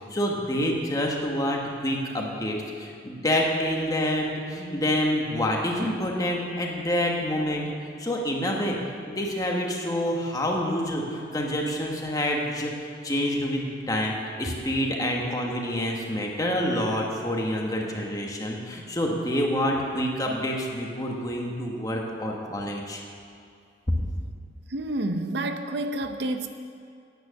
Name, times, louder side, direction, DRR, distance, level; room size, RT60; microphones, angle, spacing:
voice 1, 0.1-7.6 8.0-8.8 9.0-12.7 13.0-23.0, equal, 20° left, 0 dB, 1.4 m, -27 dB
voice 2, 24.7-26.5, right 1 dB, 65° right, 7 dB, 0.7 m, -29 dB
9.5 x 9.2 x 6.4 m, 2.4 s
head